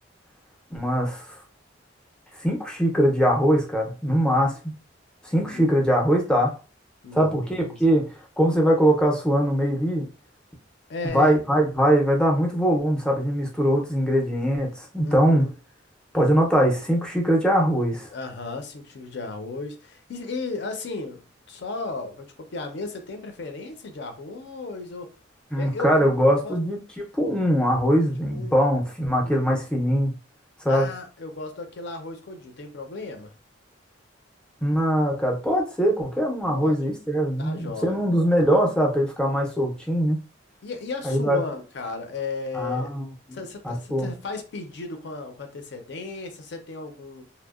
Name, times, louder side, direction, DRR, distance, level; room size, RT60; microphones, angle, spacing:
voice 1, 0.7-1.4 2.4-4.7 5.2-6.5 7.1-8.1 8.4-10.1 11.0-15.5 16.1-18.1 25.5-30.1 30.6-30.9 34.6-40.2 41.0-41.4 42.5-43.4 43.6-44.1, equal, 5° left, 0.4 m, -22 dB
voice 2, 5.3-5.7 7.0-7.8 10.9-11.4 15.0-15.5 18.1-25.1 25.6-26.6 28.3-28.6 29.2-29.6 30.7-33.3 36.5-36.8 37.1-38.0 40.6-42.9 43.3-47.2, left 3 dB, 60° left, 0.5 m, -35 dB
2.7 x 2.0 x 2.3 m
head